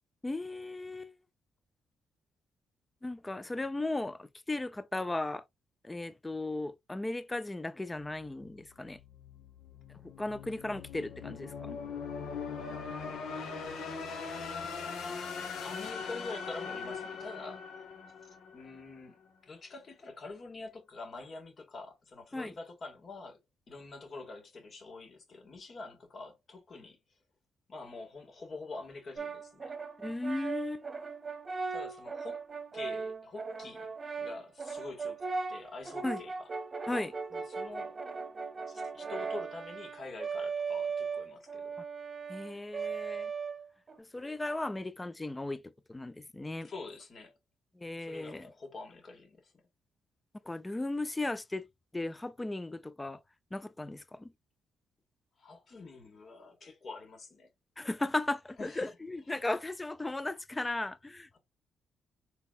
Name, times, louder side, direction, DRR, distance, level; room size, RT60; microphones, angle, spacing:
voice 1, 0.2-1.1 3.0-5.4 5.8-9.0 10.0-11.8 22.3-22.5 30.0-30.9 36.0-36.2 36.9-37.1 42.3-43.3 44.0-46.7 47.8-48.5 50.4-51.7 51.9-53.2 53.5-54.3 57.8-61.4, left 2 dB, 15° left, 0.5 m, -36 dB
sound 1, 8.1-19.0, left 5 dB, 75° left, 1.5 m, -41 dB
voice 2, 15.6-17.7 18.2-19.2 19.5-23.4 23.7-27.0 27.7-29.7 31.7-32.4 32.7-33.9 34.2-36.5 37.3-38.0 38.7-41.8 46.6-47.3 48.0-49.5 55.4-57.5 58.6-58.9, left 3 dB, 45° left, 1.9 m, -46 dB
Brass instrument, 29.2-44.0, right 5 dB, 30° right, 0.9 m, -38 dB
4.1 x 4.0 x 2.4 m
cardioid pair, 90°, 0 cm